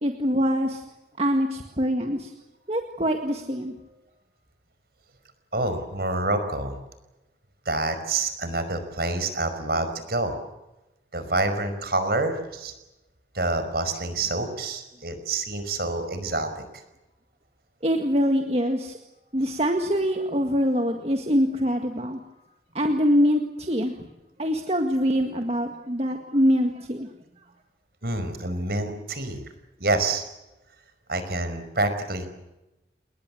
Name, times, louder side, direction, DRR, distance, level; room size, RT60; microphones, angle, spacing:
voice 1, 0.0-0.9 1.2-2.3 2.7-3.7 17.8-19.0 19.3-22.2 22.7-24.0 24.4-27.1, equal, 35° right, 4 dB, 1.9 m, -24 dB
voice 2, 5.5-6.8 7.7-10.3 11.1-12.7 13.3-16.8 28.0-29.4 29.8-30.2 31.1-32.3, right 2 dB, 60° right, 10 dB, 5.2 m, -27 dB
30.0 x 20.5 x 7.9 m, 0.96 s
head